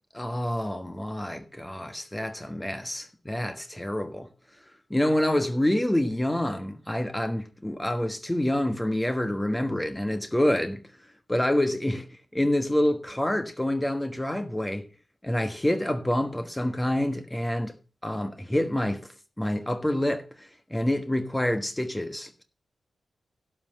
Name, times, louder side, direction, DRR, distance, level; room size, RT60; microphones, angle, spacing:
voice 1, 0.1-4.3 4.9-10.8 11.3-14.9 15.2-17.7 18.0-22.4, left 1 dB, 10° left, 1.4 m, -27 dB
11.5 x 5.8 x 7.8 m
cardioid pair, 60°, 0 cm